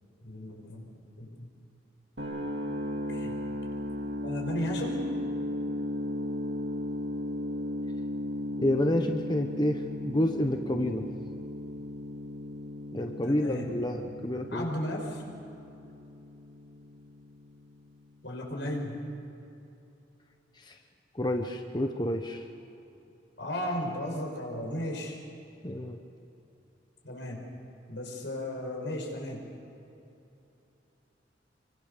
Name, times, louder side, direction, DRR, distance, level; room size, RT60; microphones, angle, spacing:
voice 1, 0.2-0.9 1.2-1.5 3.1-3.3 4.2-5.0 13.2-13.7 14.5-15.2 18.2-19.1 23.4-25.2 27.0-27.5 27.9-29.4, left 1 dB, 80° left, 1 dB, 5.8 m, -35 dB
sound 1, 2.2-18.1, left 1 dB, 70° right, 2.6 m, -36 dB
voice 2, 8.6-11.0 12.9-14.7 20.6-20.8 21.1-22.5 25.6-26.0, left 1 dB, 25° left, 4 dB, 1.0 m, -29 dB
26.5 x 24.5 x 6.7 m, 2.8 s
head